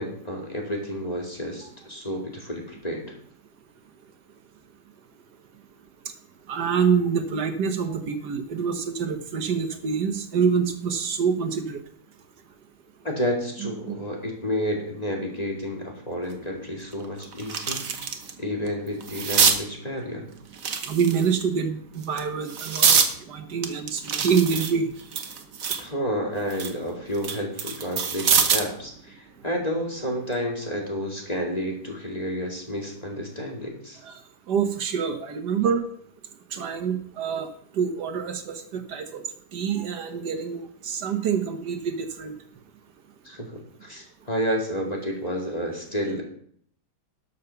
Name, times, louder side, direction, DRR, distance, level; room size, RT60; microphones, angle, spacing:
voice 1, 0.0-3.2 13.0-17.9 18.4-20.3 25.8-34.0 43.2-46.2, equal, 20° left, 0 dB, 2.2 m, -30 dB
voice 2, 6.5-11.8 13.6-14.0 20.9-23.0 23.3-24.9 34.0-34.2 34.5-35.8 36.5-37.5 37.7-39.2 39.5-42.3, right 6 dB, 70° right, 7 dB, 1.6 m, -26 dB
sound 1, 16.3-16.4 16.9-18.3 18.7-19.6 20.5-21.4 22.0-23.1 23.6-25.9 26.3-28.8 30.1-30.3, right 6 dB, 55° right, 1.5 m, -24 dB
12.0 x 5.8 x 6.9 m, 0.63 s
omnidirectional pair, 1.9 m